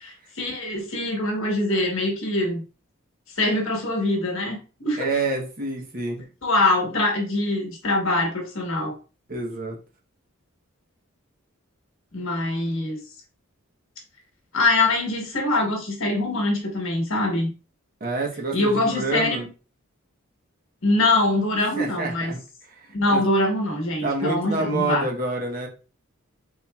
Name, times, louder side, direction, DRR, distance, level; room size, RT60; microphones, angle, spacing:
voice 1, 0.0-2.6 3.4-5.1 6.4-8.9 12.1-13.0 14.5-17.5 18.5-19.5 20.8-22.3 22.9-25.1, left 2 dB, 65° left, 2 dB, 1.3 m, -23 dB
voice 2, 5.0-6.2 9.3-9.8 18.0-19.4 21.7-22.4 23.1-23.2 24.0-25.7, right 3 dB, 40° right, 0 dB, 1.0 m, -27 dB
4.2 x 3.6 x 2.3 m, 0.34 s
head